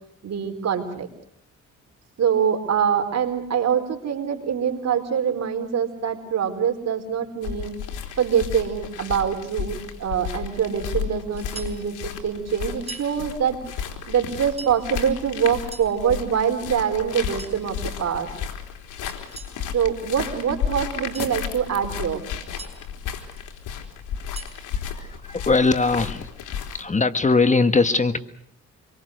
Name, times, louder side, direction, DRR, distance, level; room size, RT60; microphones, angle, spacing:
voice 1, 0.2-1.1 2.2-7.7 8.2-13.6 14.1-18.3 19.7-22.2, right 8 dB, 60° right, 6 dB, 4.6 m, -24 dB
sound 1, 7.4-26.8, left 8 dB, 85° left, 3.8 m, -33 dB
sound 2, 11.4-11.8 12.7-13.1 14.3-14.8 15.4-15.9 17.1-17.6 19.1-19.6 20.9-21.3 22.2-22.7 24.0-24.6, right 3 dB, 20° right, 7.8 m, -41 dB
voice 2, 24.9-26.3 26.7-28.2, left 3 dB, 25° left, 10 dB, 1.6 m, -20 dB
27.5 x 23.0 x 6.6 m, 0.67 s
cardioid pair, 90°, 30 cm